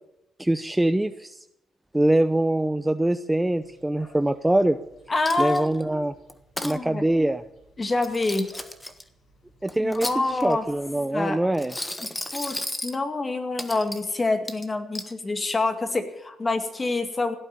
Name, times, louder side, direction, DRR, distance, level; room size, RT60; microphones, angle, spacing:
voice 1, 0.4-1.4 1.9-4.8 5.4-6.1 6.6-7.4 9.6-10.1 10.4-11.7, right 1 dB, 10° right, 10 dB, 0.6 m, -23 dB
sound 1, 3.6-11.0, left 1 dB, 55° left, 7.5 m, -54 dB
voice 2, 5.1-6.0 6.6-7.0 7.8-8.5 9.8-10.7 11.1-11.4 12.0-17.3, left 3 dB, 25° left, 7 dB, 2.1 m, -27 dB
Coin (dropping), 5.2-5.8 6.3-6.8 7.9-9.0 9.7-10.6 11.5-13.0 13.6-14.1 14.5-15.1, left 1 dB, 10° left, 1.3 m, -34 dB
16.5 x 8.8 x 8.8 m, 0.84 s
cardioid pair, 90°, 0 cm